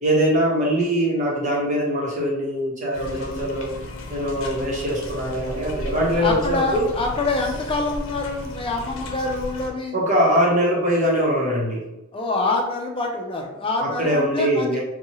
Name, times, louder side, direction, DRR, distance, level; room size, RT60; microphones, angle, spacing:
voice 1, 0.0-3.7 4.1-6.8 9.9-11.8 13.8-14.8, equal, 40° right, -3 dB, 1.1 m, -22 dB
sound 1, 2.9-9.7, left 1 dB, 75° left, 0.6 m, -34 dB
voice 2, 6.1-10.0 12.1-14.8, left 2 dB, 25° left, 1 dB, 0.6 m, -26 dB
4.3 x 2.3 x 3.0 m, 0.96 s
head